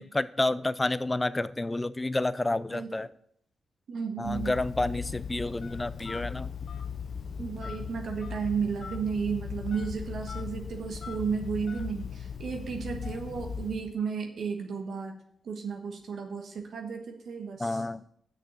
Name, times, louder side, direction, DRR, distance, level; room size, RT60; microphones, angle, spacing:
voice 1, 0.0-3.1 4.2-6.5 17.6-18.0, left 2 dB, 20° left, 16 dB, 0.5 m, -29 dB
voice 2, 3.9-4.5 7.4-15.1 15.4-17.8, right 6 dB, 75° right, 2 dB, 1.3 m, -33 dB
Telephone, 4.2-13.9, left 6 dB, 70° left, 0.7 m, -38 dB
6.4 x 6.2 x 7.3 m, 0.69 s
cardioid pair, 65°, 0 cm